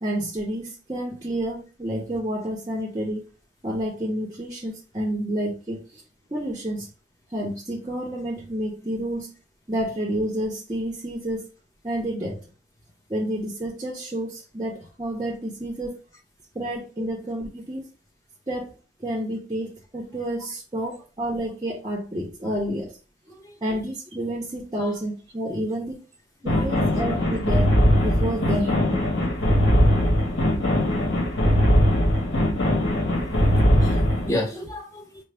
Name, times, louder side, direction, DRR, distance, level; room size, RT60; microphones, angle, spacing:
voice 1, 0.0-3.3 3.6-6.0 6.3-6.9 7.3-9.3 9.7-11.5 11.8-12.4 13.1-16.0 16.5-17.8 18.5-23.0 23.6-26.0 26.4-27.7 28.0-29.1, right 1 dB, 20° right, 0.6 m, -29 dB
sound 1, 26.5-34.3, equal, 65° left, 1.5 m, -20 dB
voice 2, 33.8-35.2, left 1 dB, 15° left, 0.8 m, -31 dB
4.6 x 2.0 x 3.3 m
head